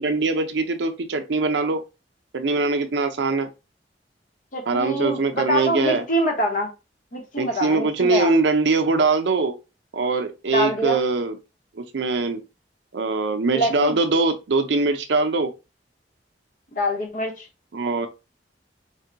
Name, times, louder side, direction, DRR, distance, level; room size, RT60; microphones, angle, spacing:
voice 1, 0.0-1.8 2.3-3.5 4.7-6.0 7.4-9.5 9.9-11.4 11.8-12.4 12.9-15.5 17.7-18.1, right 3 dB, 75° right, 0.5 m, -22 dB
voice 2, 4.5-6.7 7.1-8.4 10.5-11.0 13.5-14.0 16.8-17.4, equal, 50° left, 1.0 m, -24 dB
3.4 x 2.2 x 3.9 m
head